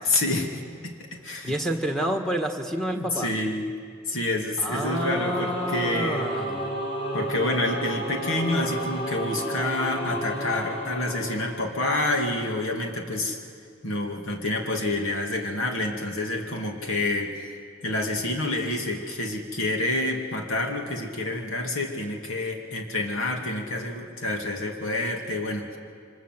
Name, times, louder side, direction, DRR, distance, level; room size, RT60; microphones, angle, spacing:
voice 1, 0.0-1.0 1.2-1.5 2.9-3.8 4.1-6.3 7.1-13.4 13.8-17.4 17.8-25.8, left 2 dB, 75° left, 2 dB, 2.6 m, -28 dB
voice 2, 1.4-3.3 4.6-6.8, right 1 dB, ahead, 3 dB, 1.7 m, -29 dB
Singing / Musical instrument, 4.8-12.3, right 1 dB, 30° left, 5.1 m, -32 dB
28.0 x 25.0 x 7.6 m, 2.2 s
head